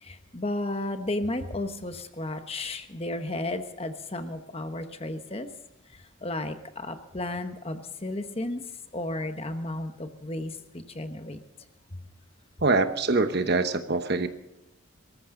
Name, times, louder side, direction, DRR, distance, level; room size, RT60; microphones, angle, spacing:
voice 1, 0.0-5.5 5.9-8.6 8.9-11.4 11.9-12.0, left 1 dB, 25° left, 8 dB, 1.1 m, -33 dB
voice 2, 12.6-14.3, right 3 dB, 50° right, 9 dB, 1.0 m, -24 dB
24.0 x 14.0 x 3.9 m, 0.93 s
head